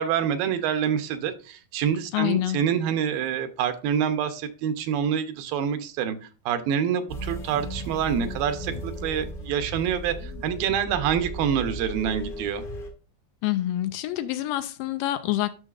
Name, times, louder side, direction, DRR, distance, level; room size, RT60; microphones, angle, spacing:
voice 1, 0.0-6.2 6.5-12.6, right 8 dB, 85° right, 9 dB, 2.6 m, -26 dB
voice 2, 2.1-2.6 13.4-15.5, left 14 dB, 80° left, 11 dB, 2.2 m, -26 dB
sound 1, 7.1-12.9, equal, 45° left, 0.7 m, -36 dB
10.5 x 6.3 x 2.4 m, 0.34 s
omnidirectional pair, 4.0 m